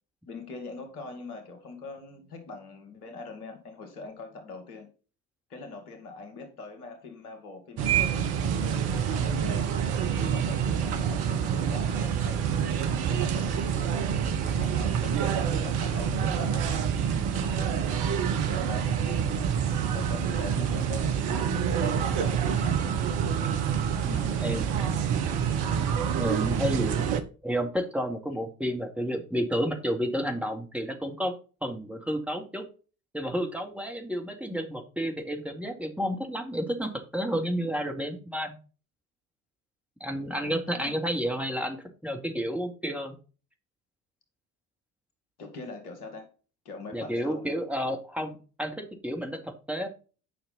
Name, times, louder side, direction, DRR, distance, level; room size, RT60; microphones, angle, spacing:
voice 1, 0.3-4.9 5.5-9.8 10.2-12.5 13.1-14.0 14.4-17.9 18.5-23.2 23.9-24.7 40.3-40.9 45.4-46.3 46.7-47.5, left 3 dB, 80° left, 5 dB, 2.0 m, -43 dB
sound 1, 7.8-27.2, right 8 dB, 60° right, 1.2 m, -27 dB
voice 2, 24.0-24.7 26.2-27.0 27.4-31.3 31.6-32.6 33.1-38.5 40.0-43.1 46.9-49.9, equal, 5° right, 3 dB, 2.2 m, -31 dB
9.8 x 5.8 x 4.0 m, 0.36 s
figure-of-eight pair, 55°, 44 cm